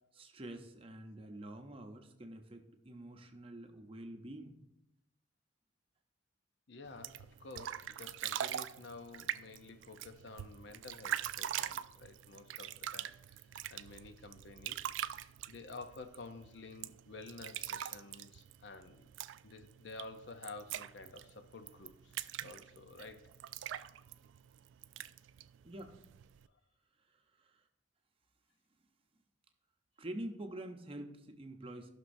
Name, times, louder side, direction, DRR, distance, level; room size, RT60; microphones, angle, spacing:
voice 1, 0.1-4.6 25.6-26.0 27.1-27.6 30.0-31.9, right 1 dB, 30° right, 6 dB, 0.7 m, -47 dB
voice 2, 6.7-19.1 19.4-23.3, left 3 dB, 65° left, 8 dB, 0.6 m, -51 dB
sound 1, 6.9-26.5, right 11 dB, 85° right, 0.3 m, -43 dB
14.5 x 6.0 x 2.6 m, 0.88 s
head